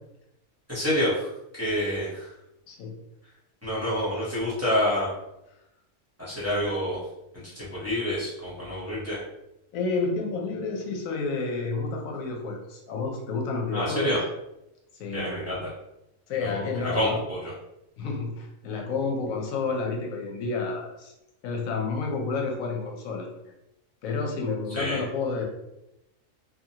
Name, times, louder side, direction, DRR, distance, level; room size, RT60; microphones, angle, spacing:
voice 1, 0.7-2.3 3.6-5.1 6.2-7.0 7.3-9.2 13.7-14.2 15.1-15.7 16.4-17.5 24.7-25.0, equal, 15° right, -10 dB, 0.8 m, -28 dB
voice 2, 9.7-14.2 15.0-15.4 16.3-17.2 18.0-21.1 21.4-23.3 24.0-25.4, left 4 dB, 85° left, 1 dB, 1.0 m, -30 dB
2.8 x 2.4 x 2.7 m, 0.88 s
omnidirectional pair, 1.4 m